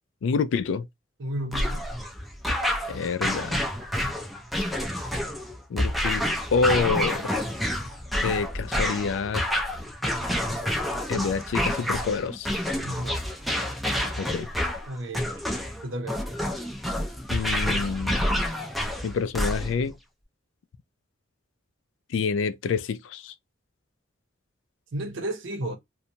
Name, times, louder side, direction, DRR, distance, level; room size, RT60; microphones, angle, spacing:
voice 1, 0.2-0.9 2.9-3.6 5.7-6.2 6.5-7.3 8.2-9.4 11.1-12.5 14.2-14.5 17.3-18.3 19.0-20.0 22.1-23.3, left 5 dB, 70° left, 0.3 m, -27 dB
voice 2, 1.2-1.8 12.8-13.2 14.9-15.3 15.8-16.2 24.9-25.8, right 1 dB, 70° right, 0.7 m, -32 dB
sound 1, 1.5-19.9, equal, ahead, 0.4 m, -28 dB
2.6 x 2.2 x 2.8 m
head